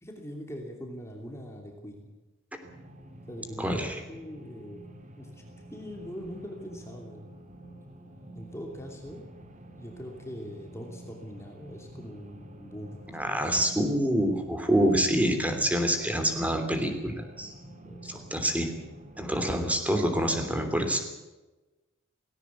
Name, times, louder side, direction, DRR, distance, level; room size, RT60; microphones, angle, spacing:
voice 1, 0.0-2.1 3.3-4.8 5.2-5.4 5.7-7.3 8.3-9.2 9.7-13.4 13.7-14.0 17.8-18.3, equal, 15° left, 1 dB, 2.9 m, -42 dB
sound 1, 2.6-19.7, right 1 dB, 35° right, 2.2 m, -48 dB
voice 2, 3.6-4.0 13.1-17.5 18.3-18.7 19.2-21.0, equal, 5° right, 6 dB, 3.2 m, -26 dB
18.0 x 17.5 x 8.4 m, 1.1 s
head